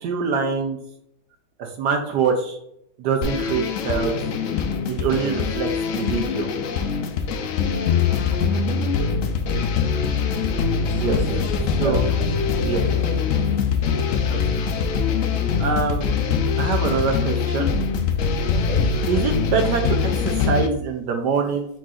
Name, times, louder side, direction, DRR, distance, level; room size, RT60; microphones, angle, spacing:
voice 1, 0.0-0.8 1.6-2.6 3.0-4.1 4.9-6.5 8.1-8.2 8.5-8.6 11.0-11.2 11.8-12.1 12.6-12.8 14.3-14.4 15.6-16.1 16.6-17.7 19.0-21.7, right 5 dB, 75° right, 3 dB, 1.2 m, -24 dB
sound 1, 3.2-20.7, left 5 dB, 85° left, 0.7 m, -23 dB
voice 2, 10.8-13.2 18.5-18.9, equal, 5° left, -4 dB, 1.4 m, -30 dB
4.6 x 4.3 x 2.4 m, 0.74 s
omnidirectional pair, 1.9 m